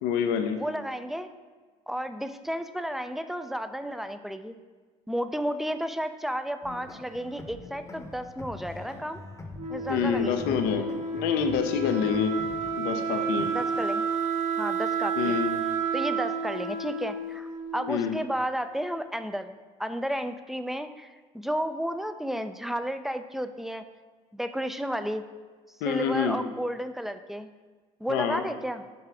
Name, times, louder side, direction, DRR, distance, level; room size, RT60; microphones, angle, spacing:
voice 1, 0.0-0.6 9.9-10.9 11.1-12.4 12.8-13.5 15.2-15.6 17.9-18.2 25.8-26.4 28.1-28.4, left 7 dB, 75° left, 6 dB, 0.6 m, -27 dB
voice 2, 0.5-1.3 1.9-4.6 5.1-9.2 9.7-10.6 13.5-14.1 14.6-15.4 15.9-23.8 24.3-25.3 25.8-27.5 28.0-28.8, equal, ahead, 9 dB, 0.4 m, -32 dB
sound 1, 6.6-13.5, left 2 dB, 20° left, 0.8 m, -43 dB
Wind instrument woodwind instrument, 9.6-18.3, right 4 dB, 45° right, 0.9 m, -30 dB
7.0 x 3.2 x 4.8 m, 1.4 s
supercardioid pair, 75°, 16 cm